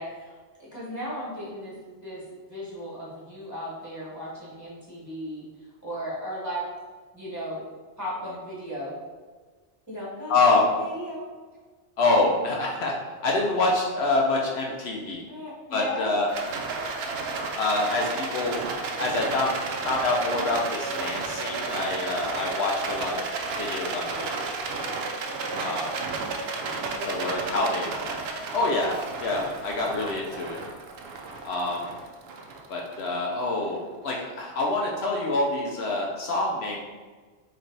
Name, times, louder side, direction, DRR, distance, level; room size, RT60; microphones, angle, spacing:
voice 1, 0.0-1.8 2.0-6.6 7.1-7.6 8.0-9.0 9.9-11.2 14.7-14.9 15.3-16.2 25.5-25.8 26.9-27.7, equal, 15° right, -8 dB, 1.3 m, -36 dB
voice 2, 10.3-10.7 12.0-13.0 13.2-15.2 15.7-16.3 17.6-18.6 19.0-19.6 19.8-23.2 23.6-24.5 25.6-25.9 27.0-27.9 28.5-30.6 31.4-31.9 32.7-36.8, left 2 dB, 70° left, -2 dB, 0.8 m, -26 dB
Rattle, 16.3-33.7, right 3 dB, 65° right, 0.7 m, -32 dB
3.3 x 3.1 x 3.8 m, 1.4 s
omnidirectional pair, 1.2 m